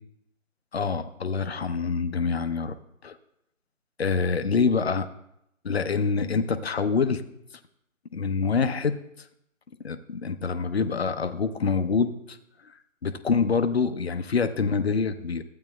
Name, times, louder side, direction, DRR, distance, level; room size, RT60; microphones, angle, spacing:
voice 1, 0.7-2.8 3.0-3.1 4.0-5.1 5.6-7.2 8.1-9.0 9.8-12.4 13.0-15.4, left 5 dB, 50° left, 9 dB, 0.6 m, -26 dB
15.0 x 8.7 x 2.2 m, 0.78 s
figure-of-eight pair, 160°, 40 cm